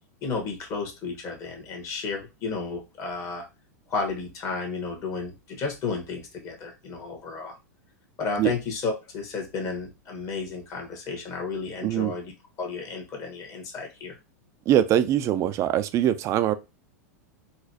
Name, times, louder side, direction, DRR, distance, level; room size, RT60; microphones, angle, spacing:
voice 1, 0.2-3.5 3.9-7.5 8.2-12.3 12.6-14.2, left 4 dB, 35° left, 1.3 m, -32 dB
voice 2, 11.8-12.1 14.7-16.5, right 11 dB, 35° right, 0.4 m, -22 dB
4.1 x 2.3 x 2.8 m
hypercardioid pair, 100°, 9 cm